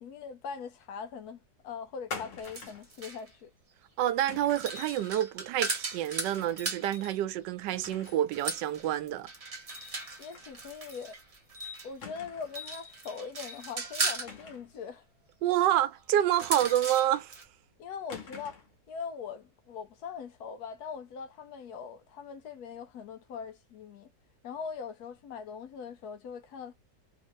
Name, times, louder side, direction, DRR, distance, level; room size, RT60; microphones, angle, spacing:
voice 1, 0.0-3.5 10.2-11.2 11.8-15.0 17.8-24.1 24.4-26.7, left 6 dB, 70° left, 1.1 m, -41 dB
sound 1, 2.1-2.9 4.3-4.7 6.4-6.7 7.1-7.2 7.7-8.3 8.6-8.7 10.3-10.5 10.9-11.0 12.0-12.6 14.2-14.8 16.6-17.2 18.1-18.8, left 4 dB, 50° left, 1.2 m, -45 dB
sound 2, 2.4-3.3 4.3-7.2 8.0-11.9 12.4-14.3 16.2-17.4, right 3 dB, 35° right, 0.6 m, -37 dB
voice 2, 4.0-9.3 15.4-17.3, right 12 dB, 85° right, 1.2 m, -28 dB
3.2 x 2.8 x 3.1 m
omnidirectional pair, 1.9 m